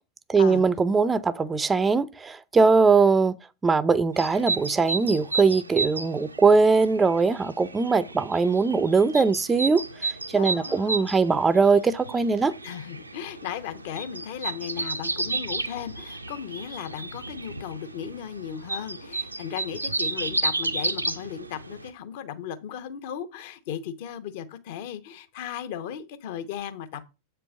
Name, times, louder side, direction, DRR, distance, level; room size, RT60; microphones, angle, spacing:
voice 1, 0.3-3.4 3.6-12.5, right 4 dB, 15° right, 0.5 m, -21 dB
sound 1, 4.1-21.9, right 3 dB, 85° right, 0.6 m, -33 dB
voice 2, 10.3-11.2 12.6-27.1, left 9 dB, 50° left, 1.0 m, -36 dB
7.9 x 4.5 x 5.2 m
figure-of-eight pair, 90°, 0 cm